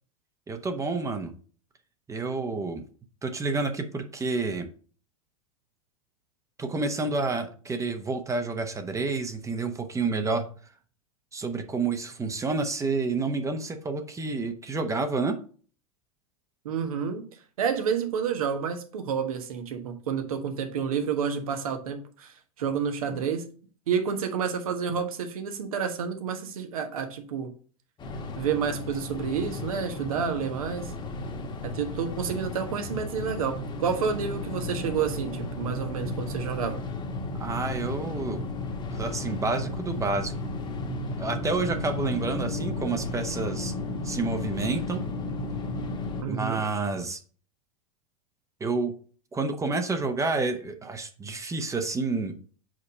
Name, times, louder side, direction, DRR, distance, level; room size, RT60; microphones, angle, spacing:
voice 1, 0.5-1.3 2.1-2.8 3.2-4.7 6.6-10.5 11.3-15.4 37.4-38.4 38.9-40.3 41.2-43.7 44.0-45.0 46.2-47.2 48.6-49.0 49.3-52.3, right 3 dB, 15° right, 7 dB, 0.8 m, -29 dB
voice 2, 16.6-17.2 17.6-23.4 23.9-27.5 28.4-30.9 31.6-36.8 46.2-46.6, right 7 dB, 80° right, 6 dB, 1.2 m, -29 dB
sound 1, 28.0-46.2, left 2 dB, 25° left, 1.1 m, -34 dB
5.1 x 4.1 x 5.4 m, 0.42 s
hypercardioid pair, 105°, 18 cm